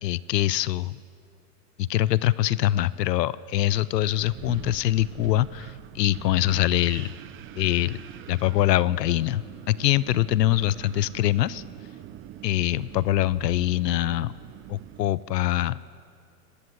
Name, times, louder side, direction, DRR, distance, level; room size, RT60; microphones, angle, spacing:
voice 1, 0.0-1.0 1.8-7.1 7.6-8.0 8.3-11.6 12.4-14.3 14.7-15.8, left 14 dB, 75° left, 20 dB, 0.7 m, -24 dB
Wind, 4.1-15.1, right 12 dB, 25° right, 0.8 m, -43 dB
20.5 x 18.0 x 7.9 m, 2.2 s
hypercardioid pair, 125°, 50 cm